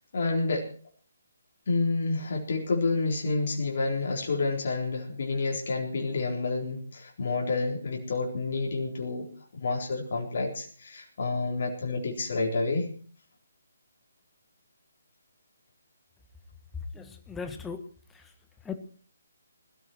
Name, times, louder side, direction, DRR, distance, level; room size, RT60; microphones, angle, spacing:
voice 1, 0.1-0.7 1.7-9.3 9.5-12.9, left 3 dB, 55° left, 0 dB, 4.1 m, -29 dB
voice 2, 16.9-18.3 18.6-18.8, left 5 dB, 10° left, 7 dB, 1.6 m, -39 dB
20.0 x 13.5 x 4.6 m, 0.43 s
figure-of-eight pair, 145°, 0 cm